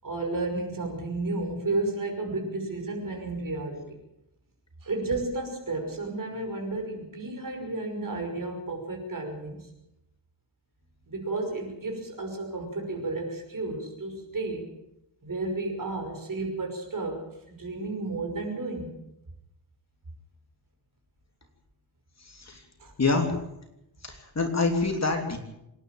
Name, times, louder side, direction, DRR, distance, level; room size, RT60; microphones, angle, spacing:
voice 1, 0.0-4.0 4.8-9.7 11.1-14.7 15.2-19.0 22.8-22.9, right 2 dB, 45° right, 4 dB, 5.7 m, -32 dB
voice 2, 22.2-22.6 23.0-23.3 24.0-25.4, left 3 dB, 35° left, 4 dB, 3.3 m, -26 dB
26.0 x 11.0 x 9.3 m, 0.85 s
wide cardioid pair, 140°, 46 cm